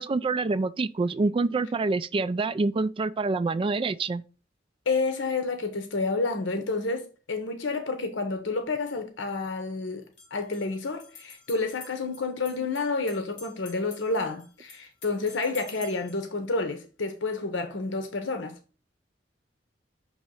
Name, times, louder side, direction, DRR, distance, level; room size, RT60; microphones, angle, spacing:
voice 1, 0.0-4.2, right 3 dB, 30° right, 0.3 m, -26 dB
voice 2, 4.9-10.0 10.3-18.6, left 3 dB, 85° left, 0.8 m, -29 dB
sound 1, 10.0-16.3, left 4 dB, 45° left, 1.4 m, -50 dB
6.3 x 3.0 x 5.5 m
head